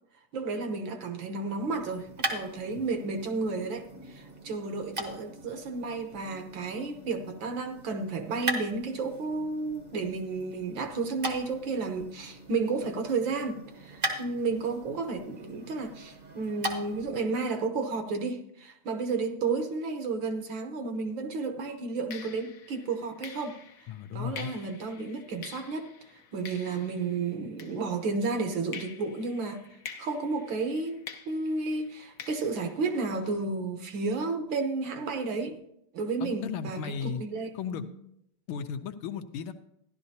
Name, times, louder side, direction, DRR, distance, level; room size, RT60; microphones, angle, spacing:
voice 1, 0.3-23.6 24.1-25.9 26.3-29.6 30.0-35.6 35.9-37.8, right 4 dB, 65° right, 6 dB, 1.6 m, -32 dB
sound 1, 1.5-17.1, right 2 dB, 35° right, 0.9 m, -40 dB
sound 2, 20.9-21.2 22.1-28.3 28.7-33.4, left 7 dB, 60° left, 0.9 m, -47 dB
voice 2, 23.9-24.5 36.2-37.2 37.5-37.8 38.5-39.5, left 7 dB, 75° left, 8 dB, 1.5 m, -35 dB
14.0 x 11.5 x 2.8 m, 0.77 s
omnidirectional pair, 2.4 m